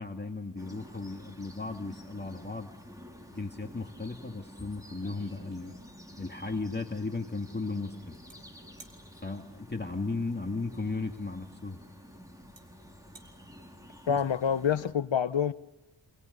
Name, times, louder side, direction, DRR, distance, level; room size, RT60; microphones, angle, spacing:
voice 1, 0.0-2.7 3.3-5.7 6.2-8.1 9.2-11.8 14.1-14.2, left 3 dB, 20° left, 2.0 m, -35 dB
sound 1, 0.6-14.9, equal, 5° right, 3.8 m, -50 dB
sound 2, 4.4-4.5 4.9-6.3 8.3-8.4 8.8-9.0 10.9-11.0 11.9-12.0 12.6-12.7 13.0-13.3, right 3 dB, 60° right, 4.5 m, -54 dB
voice 2, 14.1-15.5, left 7 dB, 65° left, 0.9 m, -27 dB
29.0 x 27.5 x 6.8 m
wide cardioid pair, 65°, 50 cm